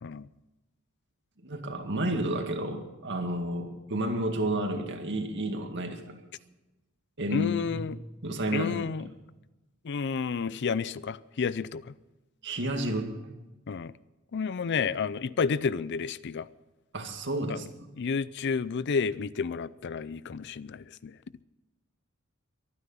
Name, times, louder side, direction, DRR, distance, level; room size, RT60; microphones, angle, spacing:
voice 1, 1.4-6.2 7.2-7.8 8.2-8.9 12.4-13.1 16.9-17.7, right 1 dB, 60° right, 2.1 m, -31 dB
voice 2, 7.3-8.0 8.5-9.1 9.8-11.9 13.7-13.9 14.3-16.5 17.5-17.6 18.0-21.1, left 5 dB, 55° left, 0.5 m, -31 dB
23.5 x 9.9 x 5.6 m
head